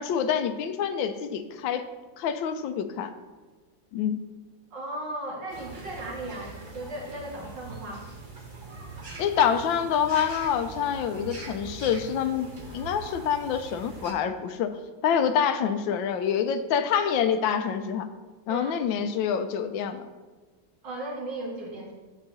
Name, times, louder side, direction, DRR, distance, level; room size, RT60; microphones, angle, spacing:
voice 1, 0.0-1.8 2.2-3.1 3.9-4.2 9.2-14.7 15.0-18.1 18.5-20.1, left 8 dB, 80° left, 10 dB, 1.3 m, -26 dB
voice 2, 4.7-8.1 18.5-18.8 20.8-21.9, right 1 dB, 65° right, -2 dB, 2.4 m, -36 dB
sound 1, 5.5-14.1, right 3 dB, 30° right, 1.2 m, -42 dB
8.2 x 4.1 x 6.6 m, 1.4 s
omnidirectional pair, 2.1 m